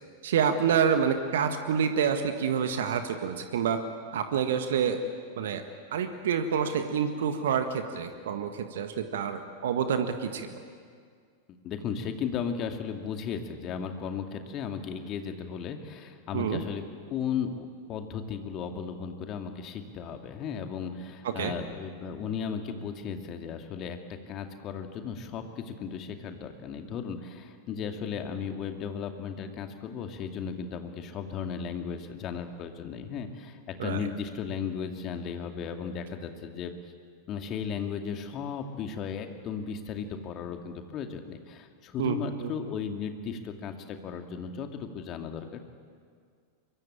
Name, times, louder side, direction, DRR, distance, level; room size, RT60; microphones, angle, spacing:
voice 1, 0.2-3.8 4.1-5.0 5.4-5.6 5.9-10.5 16.3-16.6 21.2-21.5 33.8-34.1 42.0-42.5, right 7 dB, 60° right, 8 dB, 1.7 m, -28 dB
voice 2, 11.6-16.8 17.1-36.7 37.3-45.6, left 6 dB, 35° left, 5 dB, 2.4 m, -35 dB
24.5 x 23.0 x 8.7 m, 2.1 s
figure-of-eight pair, 90°, 0 cm